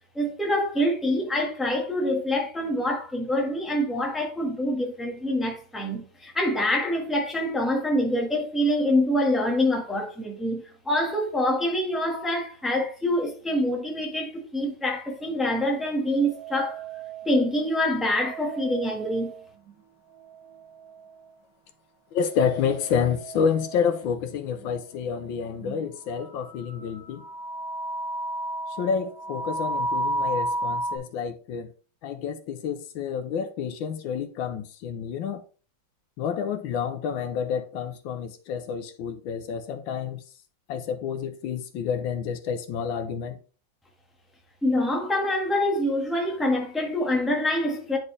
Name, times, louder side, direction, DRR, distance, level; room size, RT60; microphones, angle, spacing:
voice 1, 0.1-16.8 17.2-19.3 44.6-48.0, left 1 dB, ahead, 1.4 m, -25 dB
sound 1, 16.2-17.5 18.1-19.7 20.1-21.3 22.3-24.0 24.6-24.7 25.6-25.8 26.1-31.0, right 1 dB, 60° right, 3.3 m, -33 dB
voice 2, 22.1-27.2 28.7-31.7 32.0-35.4 36.2-40.2 40.7-43.4, left 7 dB, 80° left, 1.5 m, -29 dB
9.6 x 4.6 x 3.3 m
omnidirectional pair, 2.2 m